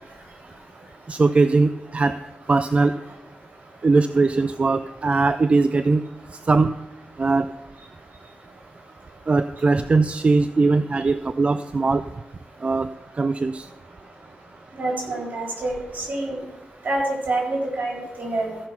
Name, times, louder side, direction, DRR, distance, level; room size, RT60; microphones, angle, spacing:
voice 1, 1.1-2.2 2.5-2.9 3.8-6.0 6.5-6.7 7.2-7.5 9.3-12.0 12.6-12.9 13.2-13.7, right 3 dB, 40° right, 12 dB, 0.4 m, -20 dB
voice 2, 14.8-16.4 16.8-18.6, right 2 dB, 65° right, -2 dB, 4.3 m, -27 dB
14.5 x 5.6 x 5.9 m, 1.1 s
cardioid pair, 65°, 3 cm